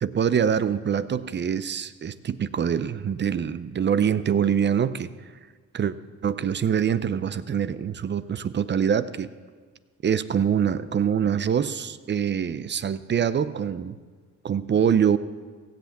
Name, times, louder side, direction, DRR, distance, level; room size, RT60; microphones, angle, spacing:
voice 1, 0.0-5.1 5.7-6.0 6.2-9.3 10.0-14.0 14.4-15.2, right 8 dB, 35° right, 14 dB, 0.6 m, -24 dB
16.0 x 5.8 x 8.5 m, 1.5 s
cardioid pair, 90°, 30 cm